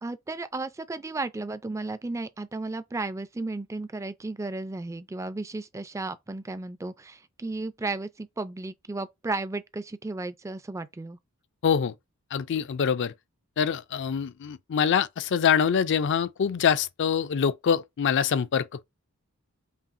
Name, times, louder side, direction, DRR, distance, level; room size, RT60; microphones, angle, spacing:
voice 1, 0.0-11.2, right 3 dB, 15° right, 0.3 m, -34 dB
voice 2, 11.6-11.9 12.3-13.1 13.6-18.8, left 7 dB, 55° left, 0.4 m, -25 dB
5.6 x 2.4 x 2.5 m
head